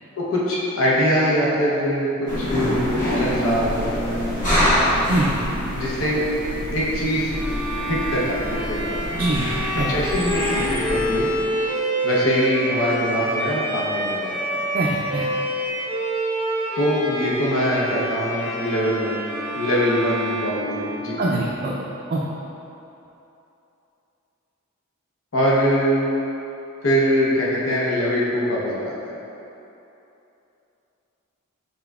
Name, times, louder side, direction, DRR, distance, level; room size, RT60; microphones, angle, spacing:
voice 1, 0.2-4.2 5.7-6.2 6.7-7.3 7.8-9.0 9.8-11.3 12.0-14.6 16.8-19.2 19.5-21.2 25.3-26.1 26.8-28.9, equal, 70° left, -6 dB, 0.8 m, -23 dB
sound 1, 2.3-11.4, equal, 40° left, 1.2 m, -25 dB
voice 2, 5.1-5.5 9.1-9.5 9.7-9.9 14.7-15.3 21.2-21.7 22.1-22.2, right 2 dB, 45° right, -4 dB, 0.4 m, -23 dB
Bowed string instrument, 7.3-21.4, right 1 dB, 10° left, 1.0 m, -27 dB
5.8 x 3.8 x 2.4 m, 2.9 s
head